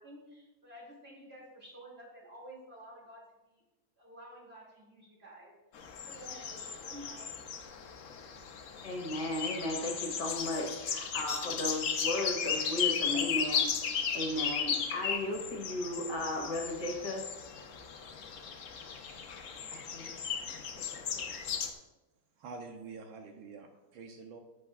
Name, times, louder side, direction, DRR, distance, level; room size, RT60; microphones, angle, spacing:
voice 1, 0.0-3.6 4.0-5.5 6.0-7.3, equal, 30° right, -4 dB, 2.6 m, -51 dB
sound 1, 5.7-21.7, left 7 dB, 80° left, 0.7 m, -36 dB
voice 2, 8.8-13.7 14.1-17.2 19.7-20.1 20.5-21.3, left 1 dB, 55° left, 0 dB, 2.0 m, -36 dB
voice 3, 22.4-24.4, right 4 dB, 75° right, 4 dB, 1.6 m, -47 dB
11.5 x 8.4 x 2.4 m, 1.0 s
omnidirectional pair, 2.4 m